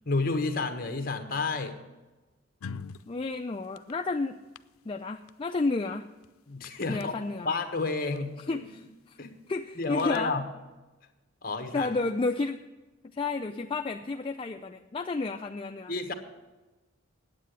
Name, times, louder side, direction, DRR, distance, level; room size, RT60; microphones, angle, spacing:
voice 1, 0.0-1.7 6.5-7.1 7.4-8.7 9.2-9.3 9.8-10.5 11.4-11.9 15.9-16.1, left 3 dB, 45° left, 6 dB, 1.3 m, -30 dB
sound 1, 2.6-3.1 3.6-3.9 4.5-4.6 5.3-5.4 5.6-5.7 6.2-6.3 6.6-7.0 8.2-8.3 8.5-8.7 9.8-10.2, left 5 dB, 90° left, 0.5 m, -40 dB
voice 2, 3.1-4.3 4.9-6.0 6.9-7.5 8.5-9.2 9.5-10.3 11.7-12.6 13.1-15.9, left 3 dB, 25° left, 5 dB, 0.4 m, -31 dB
9.7 x 8.4 x 8.1 m, 1.1 s
head